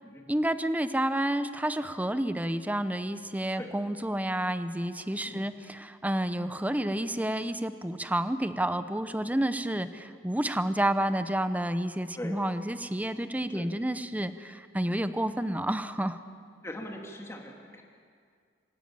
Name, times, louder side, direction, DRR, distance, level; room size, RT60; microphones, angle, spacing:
voice 1, 0.3-16.2, right 1 dB, 10° right, 11 dB, 0.7 m, -30 dB
voice 2, 16.6-17.8, left 1 dB, 15° left, 1 dB, 2.4 m, -41 dB
26.0 x 13.0 x 8.8 m, 2.2 s
head